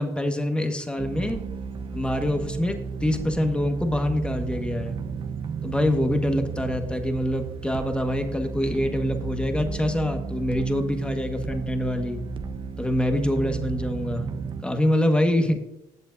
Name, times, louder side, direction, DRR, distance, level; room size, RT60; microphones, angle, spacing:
voice 1, 0.0-1.4 1.9-5.0 5.6-12.2 12.8-14.3 14.6-15.6, left 1 dB, 10° left, 5 dB, 1.6 m, -25 dB
sound 1, 1.0-14.6, right 5 dB, 40° right, 1.0 m, -33 dB
19.0 x 7.6 x 2.7 m, 0.92 s
supercardioid pair, 85°, 13 cm